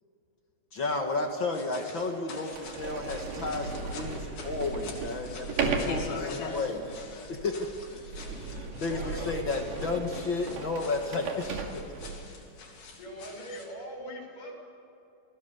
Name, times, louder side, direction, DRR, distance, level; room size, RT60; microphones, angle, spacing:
voice 1, 0.7-6.8 7.4-7.6 8.8-11.9, left 3 dB, 45° left, 3 dB, 1.7 m, -32 dB
Sliding door, 1.1-1.2 1.9-2.0 2.4-12.4, right 4 dB, 75° right, 3.9 m, -36 dB
sound 1, 1.5-13.7, left 4 dB, 85° left, 4.8 m, -44 dB
voice 2, 6.2-7.3 7.6-9.3, left 2 dB, 25° left, 2 dB, 1.8 m, -48 dB
voice 3, 8.9-9.3 13.0-14.5, equal, 65° left, 0 dB, 7.7 m, -41 dB
28.5 x 19.5 x 7.0 m, 2.7 s
omnidirectional pair, 4.1 m